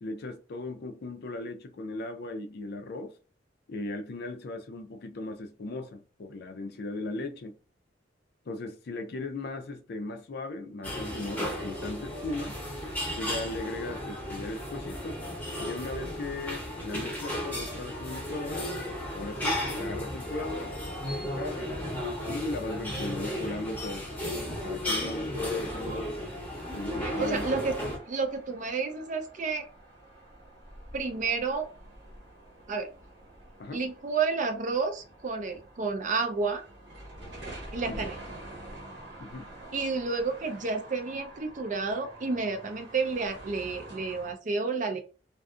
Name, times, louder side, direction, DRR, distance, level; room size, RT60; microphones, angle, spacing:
voice 1, 0.0-3.2 3.7-7.5 8.5-12.6 13.2-15.2 15.6-18.7 19.1-20.7 21.2-21.7 22.3-24.1 24.6-26.2 26.7-27.5 33.6-33.8 37.9-38.1 39.2-39.5, left 2 dB, 55° left, 0.4 m, -37 dB
sound 1, 10.8-28.0, left 1 dB, 10° left, 0.8 m, -34 dB
sound 2, 26.5-44.3, right 1 dB, 65° right, 1.0 m, -47 dB
voice 2, 27.0-27.7 28.1-29.6 30.9-31.7 32.7-32.9 33.7-36.6 37.7-38.2 39.7-45.0, right 4 dB, 40° right, 0.5 m, -30 dB
2.5 x 2.4 x 2.4 m
head